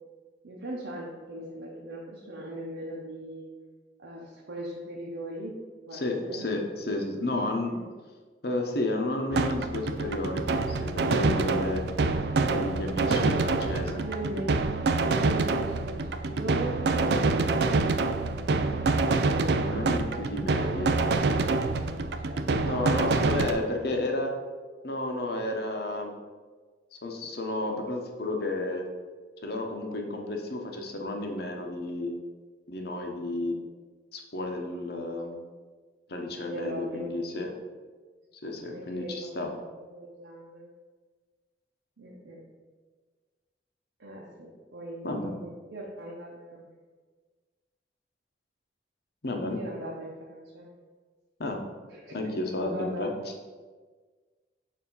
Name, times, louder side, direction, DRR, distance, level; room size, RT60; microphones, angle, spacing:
voice 1, 0.4-3.5 4.0-5.5 5.9-6.5 7.6-7.8 13.1-18.1 19.2-20.2 20.5-20.8 22.2-24.0 36.4-37.1 38.7-39.3 39.8-40.7 42.0-42.4 44.0-46.7 49.5-50.7 51.9-53.3, right 1 dB, 90° right, -4 dB, 0.9 m, -39 dB
voice 2, 5.9-7.9 8.4-10.4 10.7-11.8 12.4-13.9 19.6-21.0 22.6-24.3 24.8-26.1 27.0-28.9 29.4-32.2 32.7-33.6 34.1-35.4 36.1-37.5 38.4-39.5 45.0-45.4 49.2-49.6 51.4-51.6 52.1-53.1, left 2 dB, 60° left, 3 dB, 0.8 m, -32 dB
sound 1, 9.3-23.5, right 3 dB, 65° right, 0.4 m, -26 dB
6.9 x 2.8 x 5.4 m, 1.4 s
head